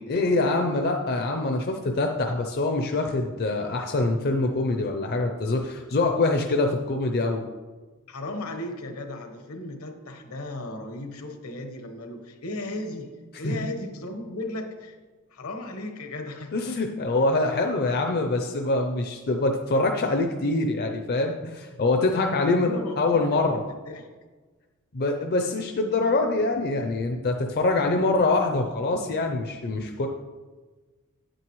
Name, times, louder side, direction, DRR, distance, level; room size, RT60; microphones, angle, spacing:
voice 1, 0.1-7.4 13.4-13.5 16.5-23.6 24.9-30.1, left 2 dB, 45° left, 3 dB, 0.6 m, -24 dB
voice 2, 8.1-15.0 15.3-16.6 22.4-24.1, left 1 dB, 75° left, 5 dB, 1.1 m, -36 dB
8.9 x 8.7 x 3.1 m, 1.3 s
head